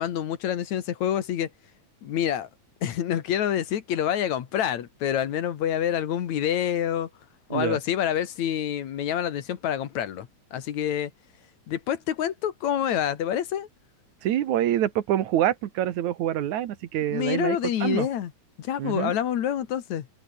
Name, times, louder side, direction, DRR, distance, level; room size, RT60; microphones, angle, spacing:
voice 1, 0.0-1.5 2.0-2.5 2.8-7.1 7.5-11.1 11.7-13.7 17.1-18.3 18.6-20.1, left 10 dB, 70° left, 2.9 m, -27 dB
voice 2, 14.2-18.1 18.8-19.1, right 11 dB, 80° right, 2.7 m, -26 dB
omnidirectional pair, 3.4 m